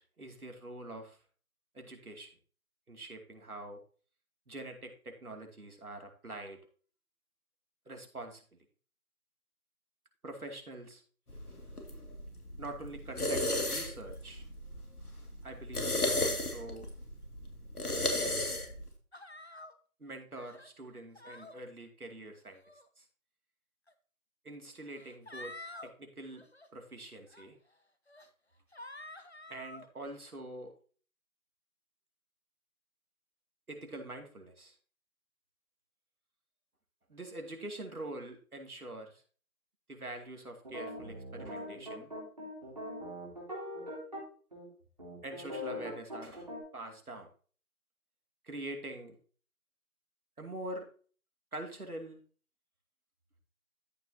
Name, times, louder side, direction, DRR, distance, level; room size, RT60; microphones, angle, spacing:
voice 1, 0.2-1.2 1.7-2.3 2.9-3.8 4.5-6.6 7.9-8.6 10.2-11.0 12.6-14.4 15.4-16.9 20.0-22.6 23.0-23.1 24.4-25.5 25.8-26.5 26.7-27.6 29.5-30.7 33.7-34.8 37.1-39.2 39.9-42.1 45.2-47.3 48.4-49.2 50.4-50.9 51.5-52.2, right 2 dB, 75° right, 3 dB, 2.6 m, -45 dB
sound 1, 11.3-18.9, left 1 dB, 75° left, 2.4 m, -35 dB
sound 2, 19.1-19.7 20.3-20.7 21.1-21.5 22.4-22.8 23.9-24.0 24.9-25.9 26.3-26.7 27.3-27.4 28.1-28.3 28.7-29.9, left 2 dB, 45° left, 0.8 m, -48 dB
sound 3, 40.6-44.2 44.5-44.6 45.0-46.6, left 1 dB, 30° right, 3.4 m, -41 dB
13.5 x 6.1 x 2.8 m, 0.41 s
figure-of-eight pair, 180°, 45 cm